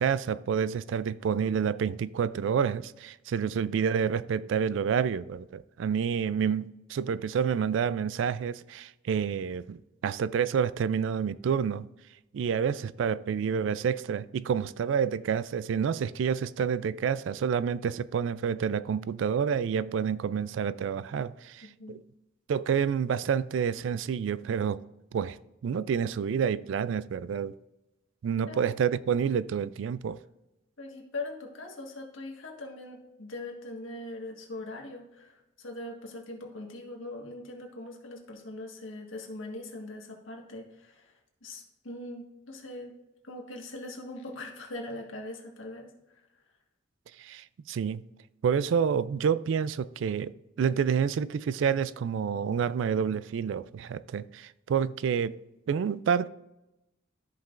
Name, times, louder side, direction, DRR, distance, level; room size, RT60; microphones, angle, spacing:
voice 1, 0.0-11.9 12.3-22.0 22.5-24.8 25.1-25.4 25.6-27.5 28.2-30.2 47.2-48.0 48.4-55.4 55.7-56.3, right 7 dB, 70° right, 0.3 m, -28 dB
voice 2, 30.8-41.1 41.4-43.0 43.2-45.9, left 2 dB, 80° left, 1.5 m, -41 dB
13.5 x 5.5 x 2.5 m
head